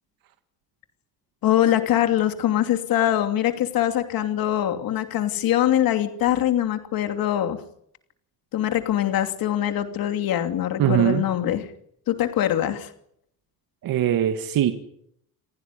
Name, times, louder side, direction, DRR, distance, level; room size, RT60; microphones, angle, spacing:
voice 1, 1.4-7.6 8.5-11.7 12.1-12.9, left 11 dB, 70° left, 7 dB, 2.9 m, -23 dB
voice 2, 10.8-11.2 13.8-14.7, right 11 dB, 65° right, 7 dB, 1.9 m, -21 dB
28.0 x 17.0 x 9.9 m, 0.71 s
cardioid pair, 175°, 37 cm